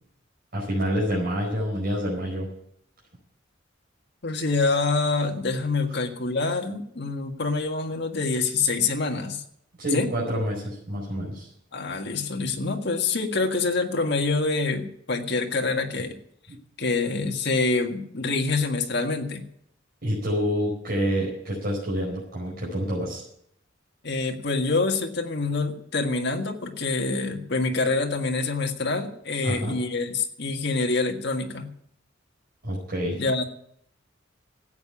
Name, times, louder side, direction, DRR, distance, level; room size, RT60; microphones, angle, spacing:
voice 1, 0.5-2.5 9.8-11.5 20.0-23.2 29.4-29.8 32.6-33.2, equal, 50° right, -6 dB, 5.1 m, -27 dB
voice 2, 4.2-9.4 9.9-10.1 11.7-16.2 16.8-19.4 24.0-31.7 33.2-33.4, left 3 dB, 60° left, 3 dB, 1.8 m, -26 dB
14.0 x 8.7 x 8.5 m, 0.70 s
head